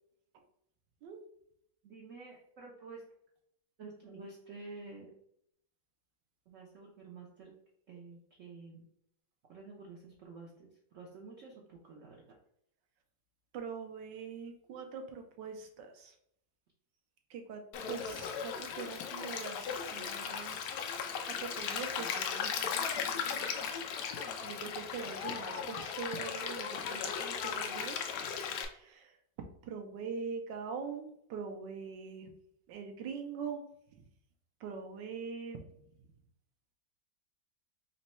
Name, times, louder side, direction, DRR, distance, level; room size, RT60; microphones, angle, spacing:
voice 1, 1.8-3.0 3.8-5.1 6.5-7.6 7.9-8.8 9.5-12.2, right 3 dB, 60° right, -2 dB, 0.8 m, -50 dB
voice 2, 13.5-16.1 17.3-20.7 21.4-22.9 23.3-23.6 24.4-28.0 28.4-29.1 29.6-32.3 32.7-33.6 33.9-34.0 34.6-35.6, right 5 dB, 80° right, 4 dB, 1.3 m, -43 dB
Stream, 17.7-28.7, left 7 dB, 70° left, 1.0 m, -37 dB
4.1 x 2.2 x 4.2 m, 0.71 s
omnidirectional pair, 2.0 m